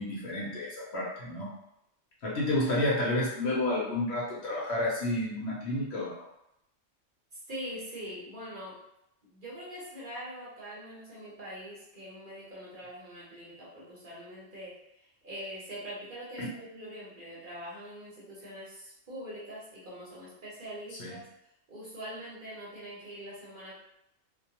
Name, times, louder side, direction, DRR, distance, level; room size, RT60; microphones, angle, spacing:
voice 1, 0.0-1.5 2.2-6.2 16.4-16.5 21.0-21.2, left 1 dB, 65° left, -5 dB, 0.9 m, -30 dB
voice 2, 7.3-8.8 9.3-21.2 21.7-23.8, equal, 50° right, -7 dB, 0.8 m, -43 dB
2.3 x 2.2 x 2.8 m, 0.82 s
omnidirectional pair, 1.3 m